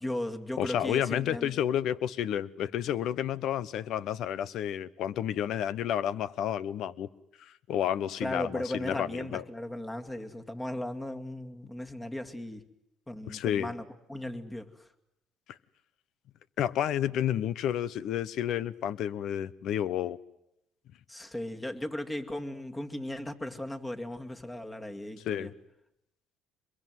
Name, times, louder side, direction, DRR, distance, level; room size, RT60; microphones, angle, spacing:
voice 1, 0.0-1.5 8.2-12.7 13.1-14.7 21.1-25.5, left 1 dB, 15° left, 6 dB, 2.4 m, -37 dB
voice 2, 0.6-7.1 7.4-9.4 13.3-13.7 15.5-15.6 16.6-20.2 25.2-25.5, left 10 dB, 70° left, 19 dB, 1.0 m, -31 dB
25.0 x 22.5 x 9.5 m, 0.82 s
cardioid pair, 90°, 0 cm